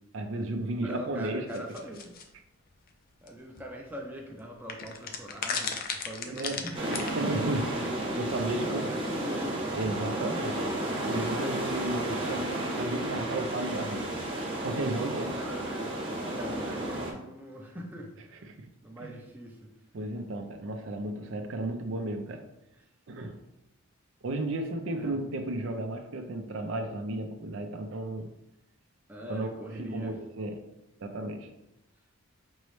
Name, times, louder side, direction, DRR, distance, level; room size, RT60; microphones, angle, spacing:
voice 1, 0.1-1.7 6.3-7.8 8.2-9.0 9.7-10.6 11.1-14.0 14.5-15.3 18.4-18.7 19.0-19.1 19.9-22.4 23.1-23.4 24.2-28.3 29.3-30.7 31.0-31.5, right 2 dB, 60° right, 6 dB, 0.4 m, -34 dB
voice 2, 0.8-2.1 3.2-6.9 8.7-9.6 15.0-18.5 18.8-19.7 25.0-25.2 29.1-30.2, equal, 10° right, -1 dB, 0.5 m, -42 dB
sound 1, 1.5-2.2 3.3-3.4 3.6-3.7 4.7-7.1, left 6 dB, 40° left, 0.4 m, -34 dB
sound 2, 6.7-17.1, right 1 dB, 25° right, 0.9 m, -32 dB
5.3 x 3.0 x 3.1 m, 0.86 s
head